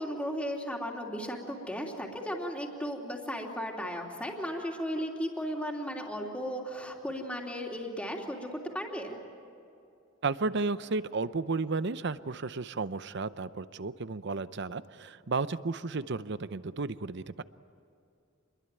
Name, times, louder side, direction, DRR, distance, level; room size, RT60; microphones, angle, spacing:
voice 1, 0.0-9.2, equal, 5° left, 0 dB, 3.1 m, -35 dB
voice 2, 10.2-17.4, right 3 dB, 60° right, 14 dB, 0.7 m, -33 dB
27.5 x 22.0 x 9.1 m, 2.6 s
head